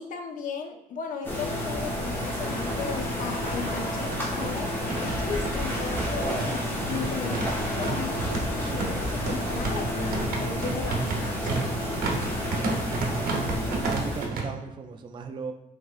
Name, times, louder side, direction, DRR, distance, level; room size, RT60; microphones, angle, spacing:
voice 1, 0.0-7.4 7.8-11.7, left 5 dB, 60° left, 4 dB, 0.6 m, -36 dB
sound 1, 1.2-14.3, equal, 15° left, 0.9 m, -30 dB
sound 2, 2.2-10.2, left 2 dB, 85° left, 1.1 m, -39 dB
sound 3, 2.4-2.5 2.8-2.9 3.7-14.4, right 3 dB, 70° right, 0.8 m, -32 dB
voice 2, 13.1-15.5, right 5 dB, 30° right, 5 dB, 0.4 m, -38 dB
5.6 x 3.4 x 2.4 m, 0.90 s
cardioid pair, 135°, 16 cm